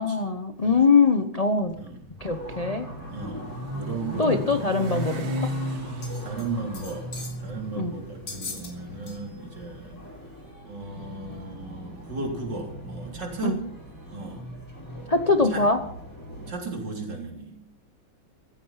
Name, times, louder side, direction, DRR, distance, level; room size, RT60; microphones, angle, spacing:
voice 1, 0.0-1.8 2.2-2.9 4.2-5.5 7.8-7.9 13.4-13.6 15.1-15.8, left 4 dB, 45° left, 7 dB, 0.4 m, -22 dB
Motorcycle, 1.6-9.8, equal, 80° right, 2.9 m, -35 dB
sound 1, 2.2-16.5, right 1 dB, 10° left, 4.8 m, -42 dB
voice 2, 3.1-4.8 6.2-10.0 10.6-13.6 14.1-14.5 15.4-15.6 16.5-17.6, right 3 dB, 55° right, 1 dB, 4.1 m, -35 dB
sound 2, 6.0-6.5 6.7-7.4 8.3-8.7 9.1-9.2 9.7-9.8, left 4 dB, 60° left, 3.8 m, -39 dB
15.5 x 14.5 x 5.8 m, 0.69 s
omnidirectional pair, 2.2 m